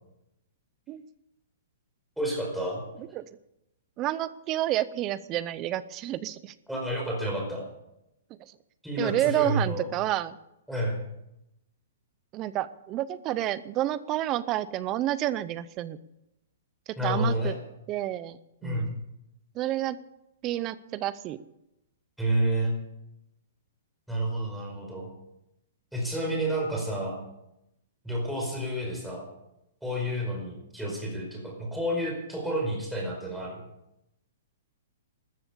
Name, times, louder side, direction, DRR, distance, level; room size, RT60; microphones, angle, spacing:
voice 1, 2.2-2.8 6.7-7.6 8.8-9.9 10.7-11.0 17.0-17.5 18.6-18.9 22.2-22.8 24.1-25.1 25.9-27.2 28.0-29.3 29.8-33.6, right 1 dB, ahead, -2 dB, 4.9 m, -30 dB
voice 2, 4.0-6.5 8.4-8.6 9.0-10.4 12.3-16.0 16.9-17.5 17.9-18.9 19.5-20.0 20.4-21.4, right 14 dB, 25° right, 17 dB, 0.6 m, -30 dB
14.5 x 13.5 x 6.9 m, 0.85 s
hypercardioid pair, 160°, 0 cm